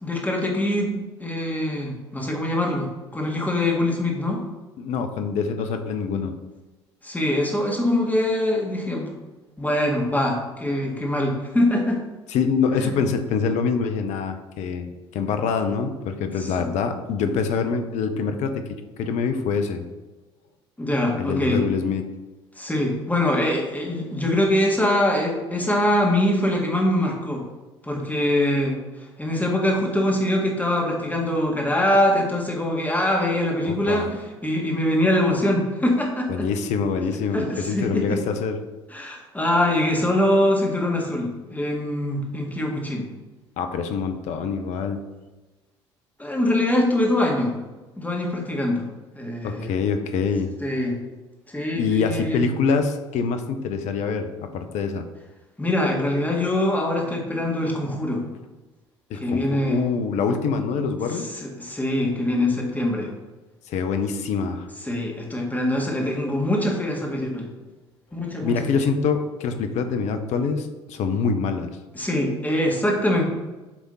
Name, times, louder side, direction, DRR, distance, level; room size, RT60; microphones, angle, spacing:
voice 1, 0.0-4.4 7.0-9.1 9.6-12.0 12.8-13.0 16.4-16.7 20.8-21.6 22.6-27.4 27.8-28.8 29.2-36.5 37.3-38.2 38.9-43.0 46.2-47.5 48.0-48.9 49.1-49.7 50.6-51.0 51.5-52.4 55.6-58.2 59.1-59.8 61.1-63.1 64.8-67.5 68.1-68.5 71.9-73.2, left 1 dB, 10° left, -1 dB, 1.7 m, -23 dB
voice 2, 4.8-6.3 12.3-18.6 19.0-19.8 21.2-22.0 33.6-34.1 36.3-38.6 43.6-45.0 49.4-50.5 51.7-55.0 59.1-61.3 63.7-64.7 68.4-71.7, left 5 dB, 55° left, 7 dB, 0.7 m, -25 dB
7.2 x 3.6 x 4.1 m, 1.1 s
figure-of-eight pair, 55°, 14 cm